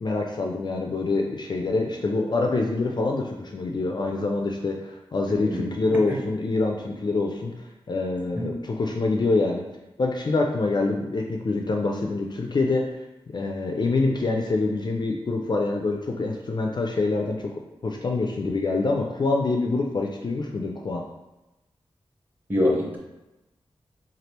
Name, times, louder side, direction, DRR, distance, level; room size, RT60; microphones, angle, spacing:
voice 1, 0.0-7.5 7.9-9.6 10.0-12.9 13.3-17.5 17.8-21.0, left 3 dB, 45° left, 1 dB, 0.3 m, -25 dB
voice 2, 5.3-5.7 8.3-8.5 22.5-23.0, left 1 dB, 15° right, -3 dB, 0.9 m, -25 dB
3.3 x 2.3 x 2.9 m, 0.99 s
wide cardioid pair, 85°, 10 cm